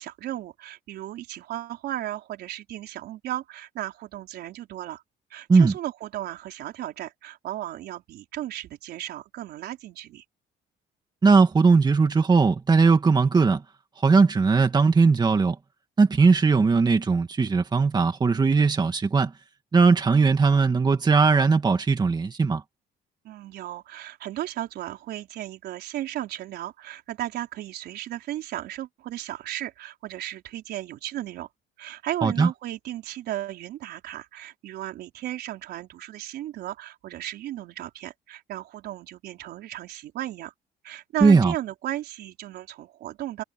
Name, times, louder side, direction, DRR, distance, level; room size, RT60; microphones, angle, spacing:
voice 1, 0.0-5.0 5.3-10.2 23.2-31.5 31.8-40.5 40.8-43.4, right 13 dB, 75° right, 4.4 m, -35 dB
voice 2, 11.2-13.6 14.0-15.6 16.0-19.3 19.7-22.6 32.2-32.5 41.2-41.5, right 4 dB, 25° right, 1.9 m, -19 dB
cardioid pair, 110°, 17 cm